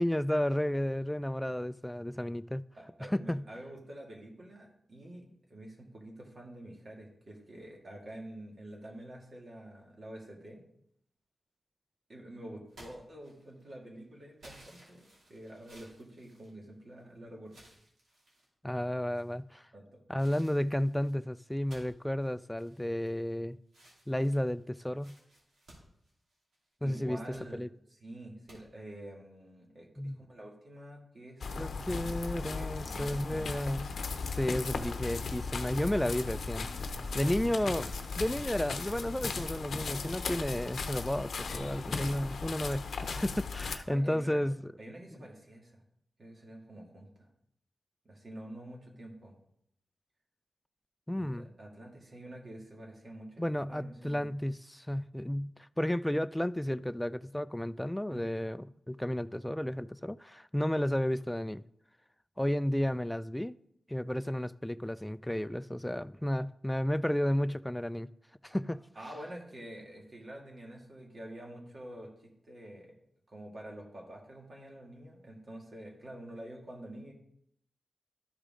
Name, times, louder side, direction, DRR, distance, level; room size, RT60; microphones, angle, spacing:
voice 1, 0.0-2.6 3.1-3.4 18.6-19.6 20.1-23.6 24.1-25.1 26.8-27.2 27.5-27.7 30.0-30.2 31.6-33.9 34.3-36.7 37.1-44.6 51.1-51.5 53.4-61.6 62.4-63.5 63.9-68.1 68.4-68.8, left 1 dB, 10° left, 0.3 m, -32 dB
voice 2, 2.8-10.6 12.1-17.6 19.7-20.0 26.8-27.6 27.9-32.1 32.3-33.5 43.9-44.4 44.8-45.8 46.2-47.3 48.0-49.4 51.2-54.3 58.1-58.2 69.0-72.9 73.3-77.1, right 1 dB, 55° right, 2.3 m, -48 dB
sound 1, 12.7-13.7 14.4-17.0 17.5-18.5 19.1-19.6 20.2-23.3 23.7-26.7 27.1-27.5 28.5-28.6, right 1 dB, 85° right, 2.8 m, -58 dB
sound 2, 31.4-43.8, left 4 dB, 85° left, 0.7 m, -37 dB
12.5 x 5.0 x 3.8 m
cardioid pair, 55°, 0 cm